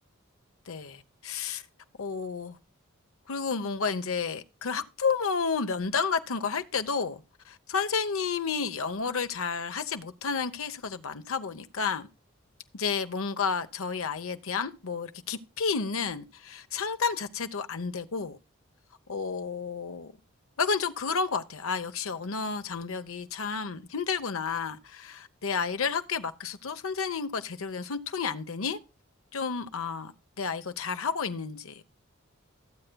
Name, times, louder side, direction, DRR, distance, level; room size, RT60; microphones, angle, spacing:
voice 1, 0.7-1.6 2.0-2.6 3.3-12.1 12.7-18.4 19.1-20.1 20.6-28.8 29.3-30.1 30.4-31.9, left 5 dB, 75° left, 0.8 m, -31 dB
16.0 x 8.0 x 2.2 m
head